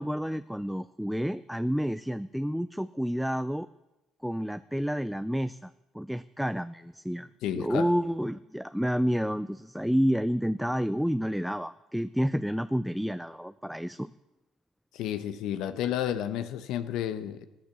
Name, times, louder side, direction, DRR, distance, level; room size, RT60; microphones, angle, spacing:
voice 1, 0.0-3.7 4.2-7.3 7.5-14.1, equal, ahead, 12 dB, 0.4 m, -29 dB
voice 2, 7.4-7.9 14.9-17.5, left 10 dB, 75° left, 11 dB, 1.0 m, -31 dB
15.0 x 9.2 x 7.0 m, 1.0 s
supercardioid pair, 75°, 0 cm